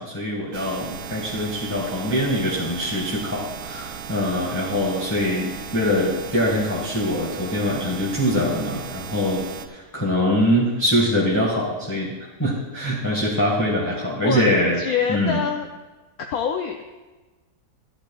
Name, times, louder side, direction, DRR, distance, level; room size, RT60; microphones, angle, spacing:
voice 1, 0.0-14.8 15.1-15.4, equal, 10° left, -6 dB, 1.8 m, -23 dB
sound 1, 0.5-9.7, right 7 dB, 75° right, 1.4 m, -36 dB
voice 2, 14.8-15.7 16.2-16.8, left 7 dB, 65° left, 3 dB, 1.1 m, -25 dB
15.0 x 11.0 x 2.4 m, 1.2 s
omnidirectional pair, 1.7 m